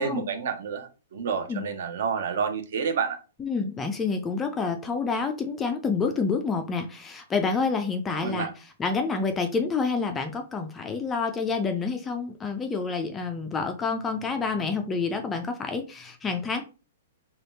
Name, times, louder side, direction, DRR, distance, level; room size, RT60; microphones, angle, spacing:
voice 1, 0.0-3.2 8.1-8.5, right 6 dB, 55° right, 7 dB, 0.7 m, -29 dB
voice 2, 3.4-8.5 8.8-16.6, left 4 dB, 10° left, 5 dB, 0.3 m, -28 dB
3.4 x 2.3 x 4.0 m, 0.32 s
hypercardioid pair, 175°, 0 cm